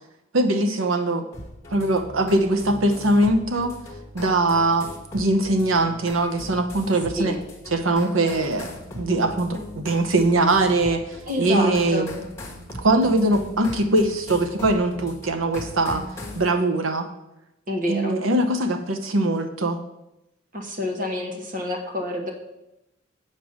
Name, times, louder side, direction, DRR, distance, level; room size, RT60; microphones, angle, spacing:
voice 1, 0.3-1.3 1.7-3.7 4.1-7.4 7.7-11.0 11.4-12.1 12.8-16.0 16.3-17.1 17.9-19.8, right 2 dB, 80° right, 7 dB, 0.9 m, -21 dB
sound 1, 1.3-16.5, left 1 dB, 15° left, 1.3 m, -39 dB
voice 2, 11.3-12.1 17.7-18.1 20.5-22.3, left 1 dB, 40° right, 2 dB, 1.2 m, -27 dB
7.6 x 5.5 x 6.4 m, 0.90 s
head